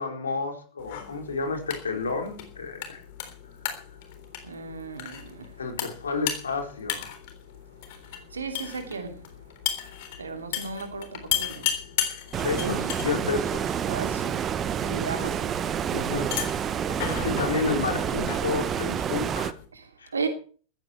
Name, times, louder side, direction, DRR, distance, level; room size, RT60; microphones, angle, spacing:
voice 1, 0.0-3.0 5.6-7.1 12.4-13.8 15.9-16.3 17.2-19.5 20.0-20.1, left 4 dB, 70° left, 4.3 m, -30 dB
sound 1, 0.8-19.7, left 10 dB, 50° left, 3.6 m, -36 dB
voice 2, 4.4-5.5 8.3-9.2 10.2-11.8 12.6-12.7 13.8-14.5 14.8-15.6 19.7-20.3, right 4 dB, 75° right, 2.9 m, -35 dB
Stream, 12.3-19.5, right 8 dB, 25° right, 1.0 m, -28 dB
15.0 x 14.5 x 4.5 m
figure-of-eight pair, 90°, 0 cm